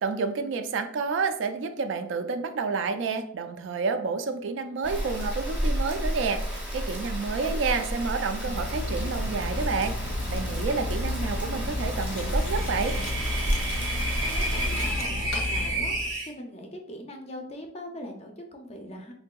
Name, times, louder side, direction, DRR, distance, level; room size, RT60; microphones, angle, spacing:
voice 1, 0.0-13.0, right 4 dB, 65° right, 9 dB, 0.3 m, -29 dB
Rain, 4.8-14.9, equal, 5° right, 0.6 m, -31 dB
Cutlery silverware, 8.4-16.2, left 2 dB, 85° left, 0.5 m, -33 dB
sound 1, 12.0-16.3, right 2 dB, 90° right, 0.7 m, -32 dB
voice 2, 14.2-19.1, equal, 30° left, 4 dB, 0.4 m, -41 dB
3.7 x 2.6 x 2.2 m, 0.70 s
head